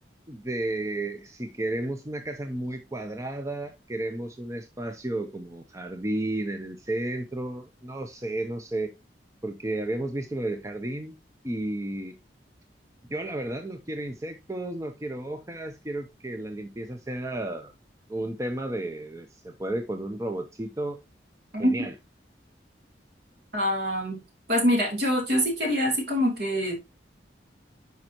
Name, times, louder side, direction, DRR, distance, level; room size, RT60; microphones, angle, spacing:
voice 1, 0.3-8.9 9.4-11.1 11.4-12.2 13.1-17.7 18.1-21.0 21.6-21.9, right 1 dB, 15° right, 0.6 m, -32 dB
voice 2, 23.5-24.2 24.5-26.8, equal, 60° right, 3.0 m, -24 dB
9.5 x 5.3 x 2.9 m
head